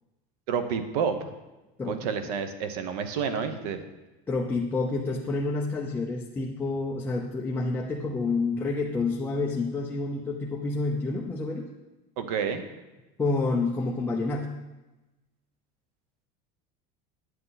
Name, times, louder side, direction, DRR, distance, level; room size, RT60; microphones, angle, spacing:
voice 1, 0.5-1.3 1.9-3.8 12.2-12.7, right 6 dB, 70° right, 9 dB, 1.1 m, -29 dB
voice 2, 4.3-11.7 13.2-14.5, left 3 dB, 10° left, -2 dB, 0.6 m, -28 dB
9.5 x 9.4 x 4.1 m, 1.1 s
cardioid pair, 170°, 20 cm